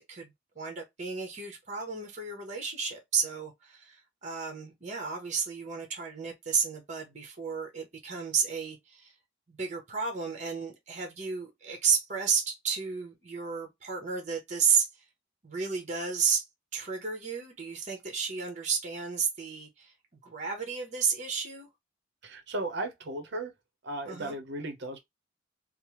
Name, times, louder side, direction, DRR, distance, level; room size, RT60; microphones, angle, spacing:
voice 1, 0.0-9.1 9.5-14.9 15.4-16.4 16.7-19.9 20.2-21.7 24.1-24.3, right 6 dB, 35° right, 0.9 m, -32 dB
voice 2, 22.2-23.5 23.8-25.0, right 2 dB, 60° right, 0.7 m, -35 dB
3.2 x 2.0 x 2.9 m
head